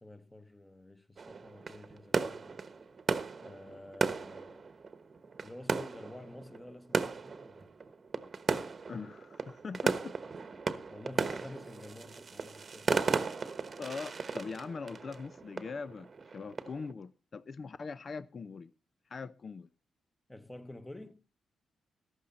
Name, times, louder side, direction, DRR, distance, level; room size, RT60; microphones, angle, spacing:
voice 1, 0.0-2.6 3.4-4.7 5.4-7.7 10.9-12.9 20.3-21.2, left 1 dB, 10° left, 1.2 m, -49 dB
sound 1, 1.2-16.9, right 4 dB, 40° right, 1.1 m, -36 dB
voice 2, 8.9-10.2 13.8-18.7 19.1-19.7, left 4 dB, 45° left, 0.6 m, -42 dB
14.5 x 11.5 x 4.1 m
cardioid pair, 90°, 0 cm